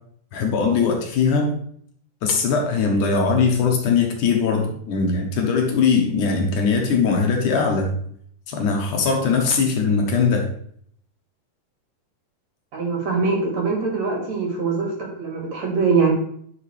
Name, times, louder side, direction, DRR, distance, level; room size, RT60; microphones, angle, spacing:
voice 1, 0.3-1.5 2.2-8.0 8.5-10.5, left 5 dB, 70° left, 2 dB, 2.5 m, -20 dB
voice 2, 12.7-16.1, right 4 dB, 55° right, -1 dB, 3.3 m, -23 dB
10.5 x 6.1 x 3.3 m, 0.63 s
omnidirectional pair, 4.0 m